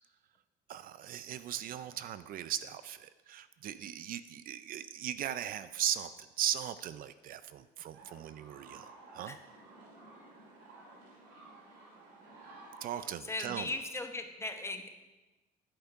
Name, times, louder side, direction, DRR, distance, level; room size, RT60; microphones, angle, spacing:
voice 1, 0.7-9.4 12.8-13.7, right 10 dB, 60° right, 14 dB, 0.4 m, -38 dB
sound 1, 7.9-13.1, right 2 dB, 90° right, 2.3 m, -54 dB
voice 2, 13.3-14.9, left 2 dB, 15° left, 6 dB, 0.8 m, -38 dB
10.5 x 5.1 x 4.7 m, 1.1 s
cardioid pair, 110°, 17 cm